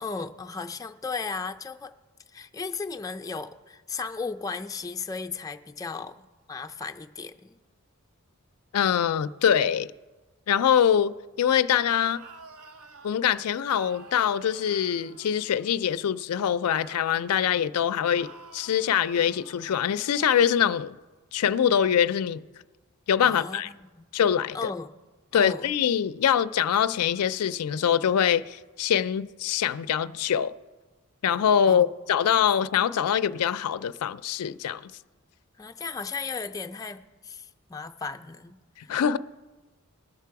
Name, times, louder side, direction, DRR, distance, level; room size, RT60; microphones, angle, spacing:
voice 1, 0.0-1.9 2.3-7.6 23.2-24.1 24.5-24.9 25.3-25.7 31.7-31.9 35.6-39.2, left 4 dB, 15° left, 0.4 m, -36 dB
voice 2, 8.7-9.9 10.5-12.2 13.0-21.0 21.3-22.4 23.1-23.7 24.1-24.7 25.3-30.5 31.2-34.9 38.9-39.2, left 8 dB, 90° left, 0.4 m, -24 dB
sound 1, 11.8-13.1 13.7-15.9 16.6-17.4 18.0-20.5, right 4 dB, 75° right, 0.9 m, -50 dB
20.0 x 6.7 x 4.7 m
head